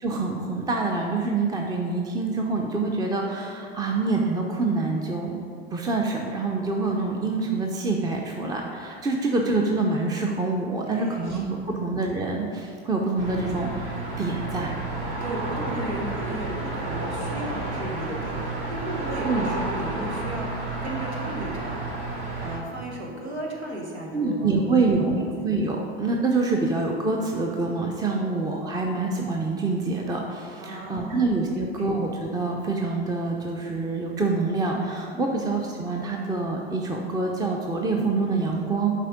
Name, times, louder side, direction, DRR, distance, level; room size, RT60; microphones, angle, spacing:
voice 1, 0.0-5.4 5.7-14.7 19.2-19.5 24.1-38.9, right 3 dB, 10° right, 1 dB, 0.6 m, -26 dB
voice 2, 10.9-11.9 15.2-21.8 22.4-25.4 28.1-28.3 30.6-31.3 31.5-31.9 35.1-35.4, right 1 dB, 90° right, -2 dB, 1.6 m, -35 dB
sound 1, 13.2-22.6, right 2 dB, 40° right, 1.6 m, -31 dB
7.5 x 4.5 x 5.0 m, 2.3 s
hypercardioid pair, 90°, 32 cm